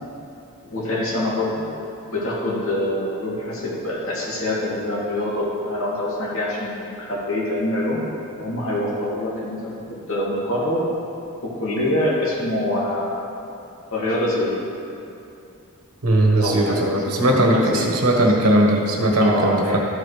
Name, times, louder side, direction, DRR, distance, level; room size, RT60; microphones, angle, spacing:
voice 1, 0.7-1.6 2.1-8.0 8.4-9.6 9.9-10.8 11.4-13.3 13.9-14.5 16.4-17.1 17.4-17.9 19.2-19.8, left 1 dB, 65° left, -6 dB, 2.4 m, -25 dB
voice 2, 16.0-19.8, right 1 dB, 75° right, 0 dB, 1.4 m, -18 dB
13.0 x 5.0 x 4.8 m, 2.6 s
head